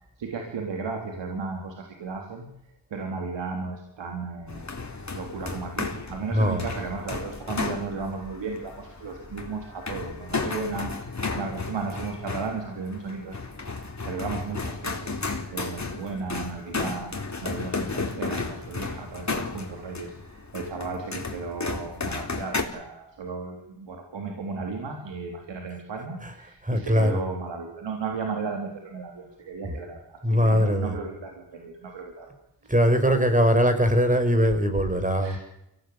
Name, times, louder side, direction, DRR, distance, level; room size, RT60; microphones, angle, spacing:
voice 1, 0.2-2.5 2.9-4.7 5.1-13.4 14.1-32.3 32.6-32.7 35.2-35.4, right 4 dB, 85° right, 2 dB, 3.6 m, -35 dB
sound 1, 4.5-22.6, left 3 dB, 40° left, 4.3 m, -33 dB
voice 2, 6.3-6.6 26.2-26.3 26.6-27.2 29.6-29.8 30.2-31.0 32.7-35.4, equal, 20° right, 8 dB, 5.5 m, -21 dB
24.0 x 17.5 x 8.6 m, 0.88 s
cardioid pair, 40°, 42 cm